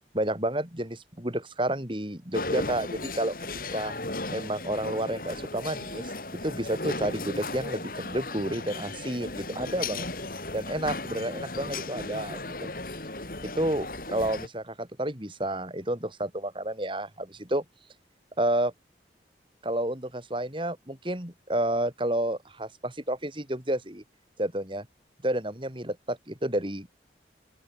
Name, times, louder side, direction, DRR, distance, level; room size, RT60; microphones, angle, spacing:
voice 1, 0.1-3.3 3.7-3.9 4.3-10.1 10.5-12.7 13.4-17.6 18.4-18.7 19.6-24.0 24.4-24.9 25.2-26.9, right 1 dB, 30° right, 4.8 m, -30 dB
sound 1, 2.3-14.5, left 2 dB, 50° left, 5.1 m, -36 dB
open air
head